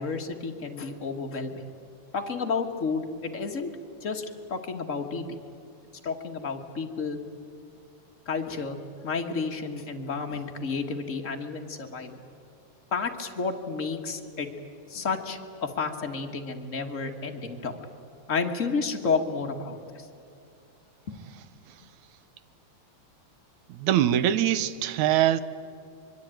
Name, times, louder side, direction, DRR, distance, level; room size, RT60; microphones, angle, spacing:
voice 1, 0.0-1.7 2.1-3.7 4.0-4.2 4.5-5.2 6.0-7.2 8.3-8.8 9.0-12.2 12.9-14.5 14.9-17.7 18.3-20.0 21.1-21.2, left 4 dB, 35° left, 1.3 m, -31 dB
voice 2, 23.7-25.4, right 11 dB, 85° right, 2.2 m, -23 dB
24.5 x 23.0 x 9.0 m
omnidirectional pair, 3.4 m